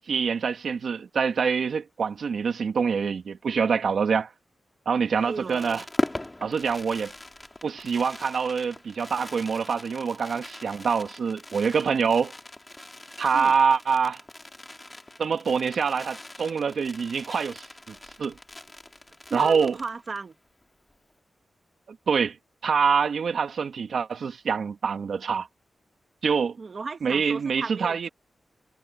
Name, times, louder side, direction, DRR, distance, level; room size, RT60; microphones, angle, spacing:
voice 1, 0.0-4.3 4.9-5.8 6.4-7.1 7.6-12.3 13.2-14.2 15.2-18.4 19.3-19.8 21.9-22.4 22.6-25.5 26.2-26.6 27.0-28.1, right 6 dB, 75° right, 2.2 m, -25 dB
Fireworks, 5.1-20.3 20.6-20.7 20.9-21.2, left 1 dB, 20° left, 4.9 m, -39 dB
voice 2, 5.2-5.8 13.3-13.5 19.3-20.3 26.6-28.1, right 4 dB, 55° right, 2.1 m, -36 dB
cardioid pair, 70°, 0 cm